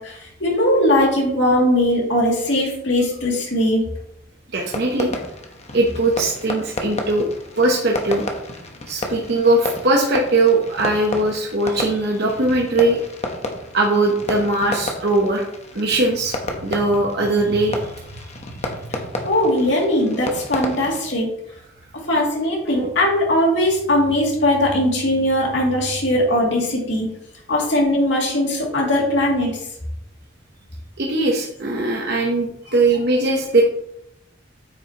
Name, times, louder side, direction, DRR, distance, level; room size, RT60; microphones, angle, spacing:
voice 1, 0.0-3.8 19.2-21.3 22.1-27.1 27.5-29.6, left 1 dB, 70° left, -2 dB, 2.6 m, -19 dB
Fireworks, 4.5-21.0, left 1 dB, 35° left, 1.0 m, -31 dB
voice 2, 4.5-5.1 5.7-7.3 7.6-8.2 8.9-13.0 13.7-15.4 15.7-16.3 16.6-17.9 18.6-18.7 31.0-33.6, right 2 dB, 60° right, 0 dB, 1.0 m, -20 dB
8.6 x 6.5 x 3.0 m, 0.77 s
head